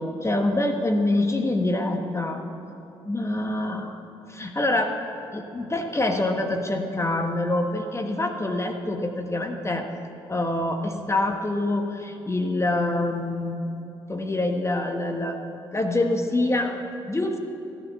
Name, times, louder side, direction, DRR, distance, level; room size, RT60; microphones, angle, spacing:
voice 1, 0.0-2.5 3.0-4.0 4.3-5.0 5.3-9.9 10.3-13.7 14.1-15.4 15.7-17.4, left 2 dB, 20° left, 4 dB, 1.3 m, -25 dB
15.0 x 8.0 x 7.2 m, 2.8 s
figure-of-eight pair, 40°, 13 cm